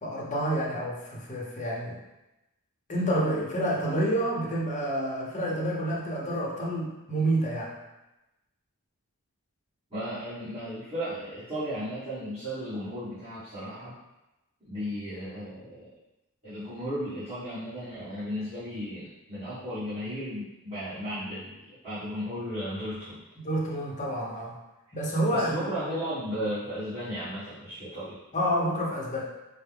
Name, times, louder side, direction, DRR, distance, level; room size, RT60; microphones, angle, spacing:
voice 1, 0.0-2.0 2.9-7.7 23.4-24.6 24.9-25.6 28.3-29.2, right 1 dB, 35° left, -3 dB, 0.7 m, -28 dB
voice 2, 9.9-14.0 14.6-15.9 16.4-21.6 21.8-23.2 25.3-28.2, equal, 25° right, -16 dB, 1.4 m, -35 dB
4.4 x 2.0 x 3.4 m, 0.99 s
head